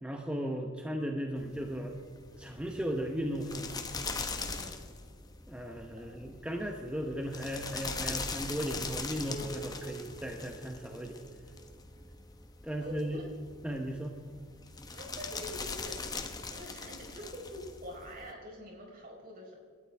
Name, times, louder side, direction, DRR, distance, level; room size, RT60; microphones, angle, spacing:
voice 1, 0.0-2.0 2.4-3.8 5.5-11.2 12.6-13.2 13.6-14.1, equal, 5° right, 2 dB, 0.9 m, -36 dB
sound 1, 1.4-18.3, left 4 dB, 20° left, 1.0 m, -41 dB
voice 2, 4.3-4.9 6.1-6.2 12.8-13.2 14.9-16.0 16.5-19.5, equal, 45° right, -1 dB, 4.6 m, -45 dB
Piano, 9.3-12.5, right 2 dB, 35° left, 4.1 m, -49 dB
28.5 x 13.0 x 3.5 m, 2.1 s
head